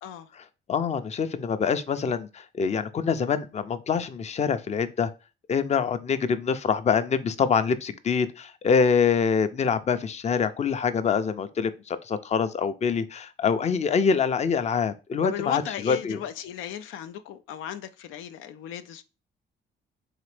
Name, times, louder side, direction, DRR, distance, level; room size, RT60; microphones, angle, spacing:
voice 1, 0.7-5.1 5.5-16.2, left 6 dB, 35° left, 0.5 m, -25 dB
voice 2, 15.2-19.0, left 10 dB, 90° left, 0.4 m, -35 dB
4.0 x 3.3 x 3.2 m
cardioid pair, 90°, 20 cm